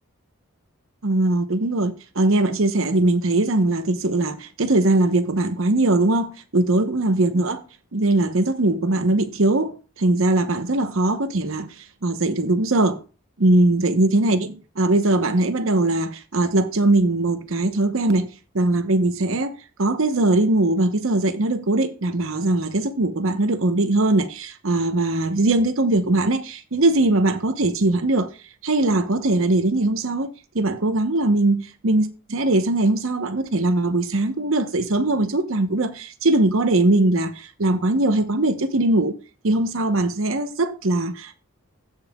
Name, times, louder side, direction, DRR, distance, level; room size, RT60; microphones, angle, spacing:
voice 1, 1.0-7.6 7.9-13.0 13.4-28.3 28.6-30.3 30.5-39.1 39.4-41.4, right 2 dB, 70° right, 0.9 m, -21 dB
16.0 x 5.7 x 2.3 m
head